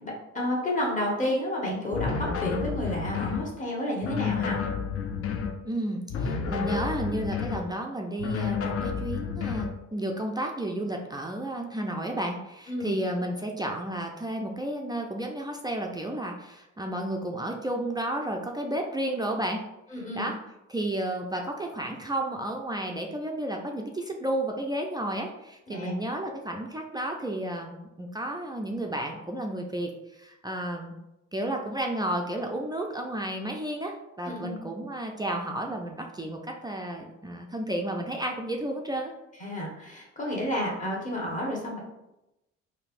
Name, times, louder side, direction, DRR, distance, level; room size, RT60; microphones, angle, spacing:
voice 1, 0.0-4.6 12.7-13.0 19.9-20.3 25.7-25.9 34.3-34.6 39.4-41.8, left 1 dB, 25° left, -2 dB, 1.0 m, -31 dB
sound 1, 1.9-3.5 4.0-5.6 6.1-7.7 8.2-9.8, left 6 dB, 50° left, 0.4 m, -30 dB
voice 2, 5.7-19.6 20.1-20.4 20.7-30.9 31.3-39.1, right 1 dB, 15° right, 1 dB, 0.3 m, -32 dB
3.2 x 2.7 x 2.4 m, 0.92 s
cardioid pair, 90°, 30 cm